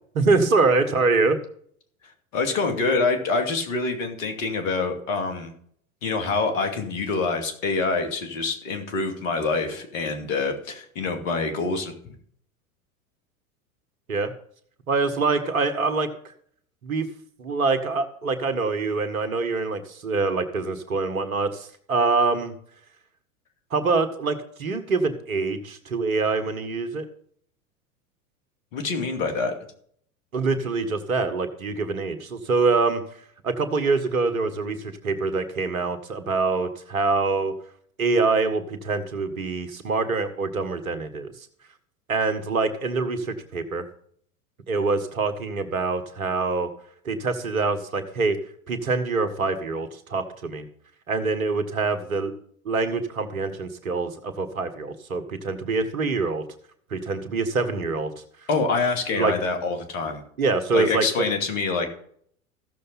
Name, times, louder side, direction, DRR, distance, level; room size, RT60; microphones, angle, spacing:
voice 1, 0.1-1.4 14.1-14.3 14.9-16.3 16.8-17.1 17.4-22.5 23.7-27.1 30.3-33.0 33.4-37.5 38.0-41.3 42.1-43.8 44.7-46.7 47.0-48.4 48.7-50.7 51.1-52.3 52.6-56.4 56.9-58.1 59.1-59.3 60.4-61.1, right 3 dB, 80° right, 9 dB, 1.6 m, -25 dB
voice 2, 2.3-5.5 6.0-12.1 28.7-29.5 58.5-60.2 60.7-61.9, left 3 dB, 65° left, 5 dB, 2.8 m, -26 dB
15.0 x 6.8 x 4.2 m, 0.62 s
hypercardioid pair, 85°, 41 cm